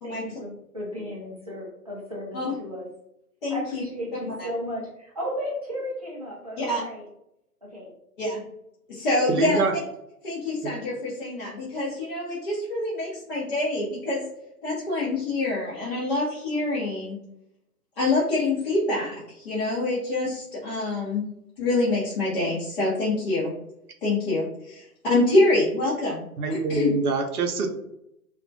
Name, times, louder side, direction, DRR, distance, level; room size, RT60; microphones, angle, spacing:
voice 1, 0.0-2.9 3.5-7.1 7.6-7.9, equal, 25° right, -4 dB, 0.4 m, -34 dB
voice 2, 3.4-3.8 4.4-4.5 6.6-6.8 8.2-8.4 8.9-9.6 10.2-14.3 14.6-17.2 18.0-21.2 21.6-23.5 24.0-26.9, left 2 dB, 35° left, -8 dB, 0.6 m, -26 dB
voice 3, 9.3-9.7 10.6-10.7 26.4-27.7, right 4 dB, 70° right, 4 dB, 0.6 m, -25 dB
2.2 x 2.1 x 2.6 m, 0.81 s
figure-of-eight pair, 130°, 46 cm